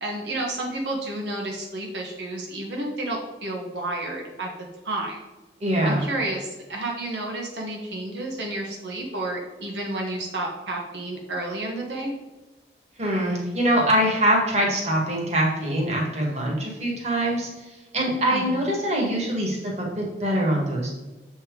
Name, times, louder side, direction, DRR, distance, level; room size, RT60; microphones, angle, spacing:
voice 1, 0.0-4.5 4.8-5.2 5.8-12.1 18.3-18.6, right 2 dB, 85° right, 0 dB, 1.4 m, -31 dB
voice 2, 5.6-6.0 13.0-17.5 17.9-20.9, right 1 dB, 40° right, -2 dB, 1.8 m, -23 dB
7.4 x 4.5 x 4.8 m, 1.1 s
head